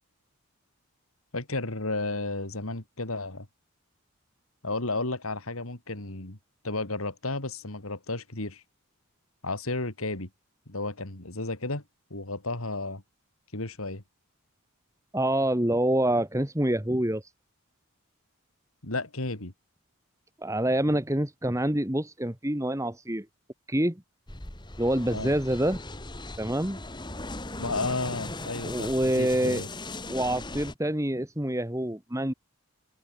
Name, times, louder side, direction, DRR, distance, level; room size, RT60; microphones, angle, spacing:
voice 1, 1.3-3.5 4.6-6.4 6.6-8.6 9.4-10.3 10.7-11.8 12.1-13.0 13.5-14.0 18.8-19.5 25.1-25.3 27.6-29.7, left 2 dB, 75° left, 3.2 m, -33 dB
voice 2, 15.1-17.3 20.4-23.3 23.7-24.0 24.8-25.8 26.4-26.8 28.6-29.6 30.1-32.3, right 1 dB, 15° right, 1.7 m, -26 dB
sound 1, 24.3-30.7, left 2 dB, 20° left, 2.5 m, -38 dB
head